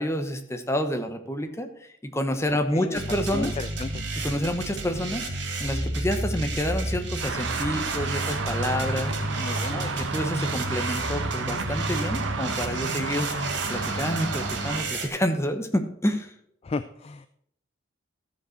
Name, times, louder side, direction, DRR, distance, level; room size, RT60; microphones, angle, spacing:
voice 1, 0.0-1.7 2.0-3.6 4.2-5.3 5.6-16.3, equal, 15° left, 6 dB, 1.0 m, -29 dB
sound 1, 2.9-15.1, right 2 dB, 60° right, 2.1 m, -31 dB
voice 2, 3.3-4.1 8.8-9.8 16.6-17.3, left 3 dB, 30° left, 12 dB, 0.3 m, -34 dB
Traffic noise roadway noise, 7.2-14.8, right 4 dB, 75° right, 1.1 m, -32 dB
14.0 x 5.2 x 6.4 m, 0.70 s
head